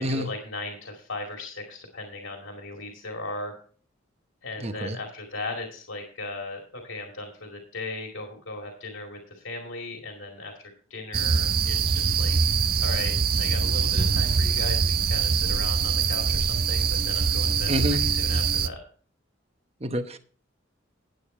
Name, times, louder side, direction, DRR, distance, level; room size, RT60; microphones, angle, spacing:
voice 1, 0.0-3.6 4.4-12.3 12.8-18.8, left 2 dB, 85° left, 2.3 m, -37 dB
voice 2, 4.6-5.0 17.7-18.0 19.8-20.2, equal, 30° right, 0.9 m, -27 dB
sound 1, 11.1-18.7, right 5 dB, 50° right, 0.6 m, -23 dB
10.5 x 8.7 x 4.3 m
head